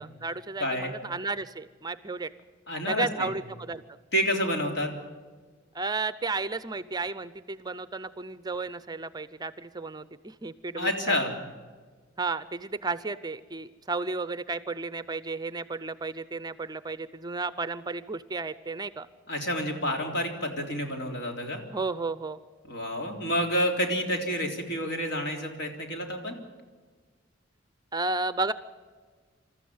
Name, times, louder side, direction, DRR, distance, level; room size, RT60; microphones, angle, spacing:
voice 1, 0.0-2.3 2.9-4.0 5.7-11.3 12.2-19.1 21.7-22.4 27.9-28.5, right 3 dB, 20° right, 14 dB, 0.6 m, -33 dB
voice 2, 0.6-0.9 2.7-3.3 4.1-4.9 10.8-11.3 19.3-21.6 22.7-26.4, equal, 60° left, 2 dB, 3.8 m, -29 dB
27.0 x 14.0 x 9.5 m, 1.5 s
head